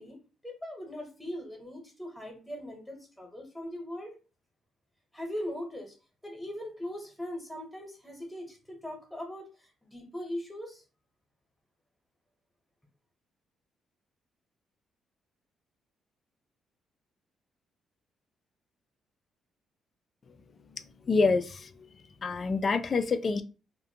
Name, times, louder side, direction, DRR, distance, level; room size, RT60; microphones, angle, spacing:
voice 1, 0.0-4.2 5.1-6.0 6.2-10.8, left 1 dB, 5° left, 0.9 m, -40 dB
voice 2, 21.1-21.7 22.2-23.4, left 4 dB, 40° left, 0.3 m, -26 dB
2.4 x 2.1 x 2.7 m
cardioid pair, 90°, 0 cm